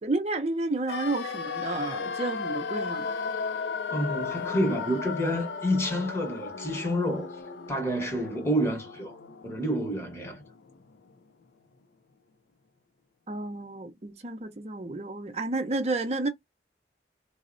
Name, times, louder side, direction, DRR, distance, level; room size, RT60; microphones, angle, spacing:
voice 1, 0.0-3.1 13.3-16.3, right 2 dB, 35° right, 0.6 m, -31 dB
sound 1, 0.9-10.8 11.1-11.2, left 5 dB, 75° left, 0.4 m, -35 dB
voice 2, 3.9-7.3 7.7-9.2 9.4-10.4, equal, 15° left, 1.0 m, -28 dB
3.9 x 2.0 x 2.5 m
head